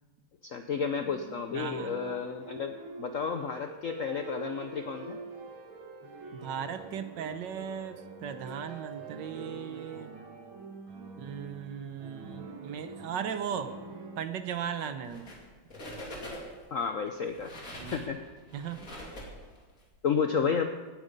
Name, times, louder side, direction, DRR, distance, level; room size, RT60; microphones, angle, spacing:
voice 1, 0.4-5.2 16.7-18.2 20.0-20.7, left 6 dB, 65° left, 6 dB, 0.8 m, -32 dB
sound 1, 0.9-14.2, right 3 dB, 85° right, 2.4 m, -45 dB
voice 2, 1.5-1.9 6.3-10.1 11.2-13.7 14.2-15.3 17.8-18.1 18.5-18.8, right 8 dB, 65° right, 9 dB, 1.4 m, -37 dB
sound 2, 15.0-15.4 15.7-16.7 17.2-19.8, equal, 40° left, 3.1 m, -43 dB
17.5 x 9.5 x 5.2 m, 1.3 s
omnidirectional pair, 2.2 m